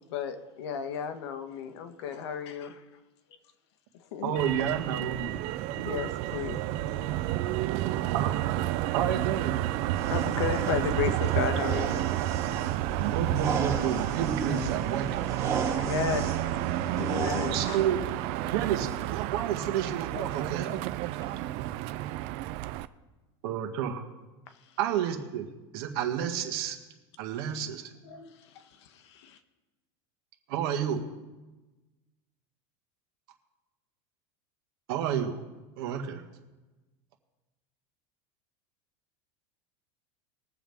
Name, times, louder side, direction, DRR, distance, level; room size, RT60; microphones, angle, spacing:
voice 1, 0.1-2.8 4.1-4.7 5.8-6.6 6.9-7.5 8.0-8.2 10.1-12.1 14.5-14.8 15.6-16.6 16.9-17.9 20.1-20.3 28.0-29.4, left 7 dB, 80° left, 8 dB, 1.2 m, -34 dB
voice 2, 4.2-5.5 8.1-8.3 8.9-9.6 13.0-15.1 17.5-18.0 18.5-20.7 23.4-24.0 24.8-25.5 25.7-26.8 27.2-27.8 30.5-31.0 34.9-35.4 35.8-36.2, right 9 dB, 65° right, 4 dB, 1.7 m, -30 dB
Motor vehicle (road), 4.4-22.9, right 15 dB, 45° right, 0.4 m, -31 dB
sound 1, 6.4-20.1, left 6 dB, 45° left, 2.7 m, -52 dB
sound 2, 9.9-17.9, right 5 dB, 25° right, 1.8 m, -36 dB
voice 3, 14.9-15.5 18.4-18.5 20.1-20.7 21.1-21.8, right 7 dB, 85° right, 4 dB, 2.0 m, -43 dB
21.5 x 7.4 x 3.5 m, 1.2 s
supercardioid pair, 165°, 14 cm